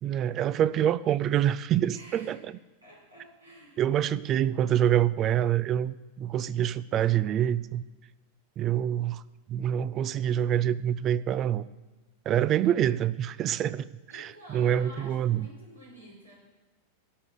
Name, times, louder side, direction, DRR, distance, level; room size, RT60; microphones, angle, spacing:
voice 1, 0.0-2.4 3.8-7.8 8.6-9.2 9.5-11.7 12.3-13.9 14.1-15.4, right 10 dB, 30° right, 18 dB, 0.4 m, -26 dB
voice 2, 1.9-2.4 2.8-3.8 14.1-16.4, equal, 80° right, -3 dB, 5.7 m, -49 dB
13.0 x 6.4 x 9.6 m, 1.1 s
figure-of-eight pair, 90°, 0 cm